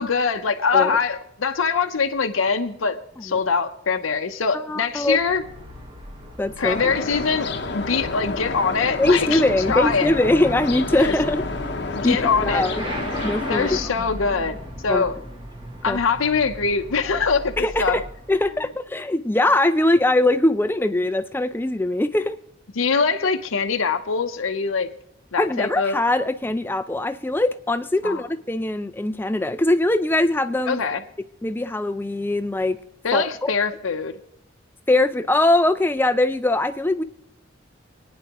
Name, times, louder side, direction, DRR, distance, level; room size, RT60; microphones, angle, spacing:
voice 1, 0.0-5.4 6.6-9.4 9.7-10.2 10.9-11.1 11.9-12.6 13.5-14.5 14.8-15.2 15.8-18.0 22.8-24.9 25.3-26.0 28.0-28.2 30.7-31.0 33.0-34.1, left 5 dB, 85° left, 5 dB, 0.7 m, -23 dB
voice 2, 4.5-5.2 6.4-6.8 9.0-11.4 12.0-12.8 13.2-13.7 14.9-15.0 15.9-16.0 17.6-18.0 18.3-22.4 25.4-30.8 31.4-32.8 33.1-33.5 34.9-37.0, left 1 dB, 10° left, 10 dB, 0.4 m, -21 dB
Motorcycle / Accelerating revving vroom, 5.0-18.8, equal, 25° right, 1.1 m, -36 dB
sound 1, 6.6-13.8, left 3 dB, 55° left, 0.8 m, -30 dB
27.0 x 9.6 x 3.0 m, 0.77 s
head